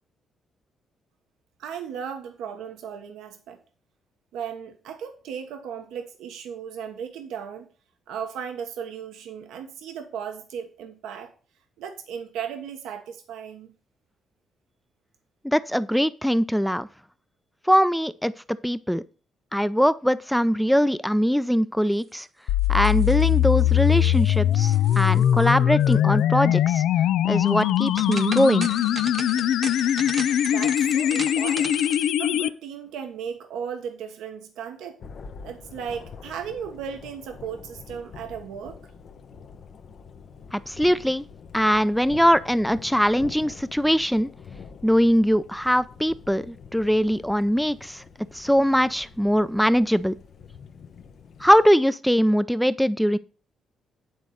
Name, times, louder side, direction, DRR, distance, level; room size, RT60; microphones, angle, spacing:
voice 1, 1.6-3.6 4.3-7.7 8.1-11.3 11.8-13.7 30.4-31.8 32.2-35.0 35.4-38.8, right 7 dB, 90° right, 1.1 m, -36 dB
voice 2, 15.4-16.9 17.7-18.3 18.6-19.0 19.5-22.3 22.7-26.8 27.2-28.7 40.5-41.2 41.5-44.3 44.8-48.0 48.3-50.1 51.4-53.2, equal, ahead, 0.5 m, -21 dB
sound 1, 22.5-32.5, left 11 dB, 80° left, 0.4 m, -21 dB
sound 2, 22.6-23.6 23.9-24.4 24.6-25.5 25.8-26.0 27.6-32.1, right 4 dB, 35° right, 0.8 m, -38 dB
Thunder, 35.0-51.7, left 5 dB, 60° left, 0.9 m, -45 dB
9.3 x 4.0 x 6.4 m
cardioid pair, 90°, 0 cm